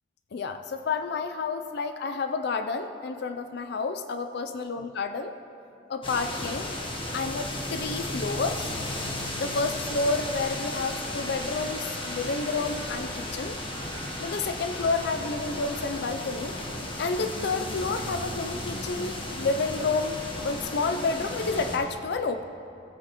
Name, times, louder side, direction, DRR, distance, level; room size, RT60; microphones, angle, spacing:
voice 1, 0.3-5.3 5.9-6.7 7.1-8.7 9.4-13.5 14.2-16.6 17.0-22.4, left 4 dB, 65° left, 7 dB, 0.4 m, -30 dB
sound 1, 6.0-21.8, left 1 dB, 30° left, 1.1 m, -34 dB
sound 2, 9.8-15.8, right 4 dB, 80° right, 1.2 m, -47 dB
17.0 x 8.0 x 3.0 m, 2.7 s
head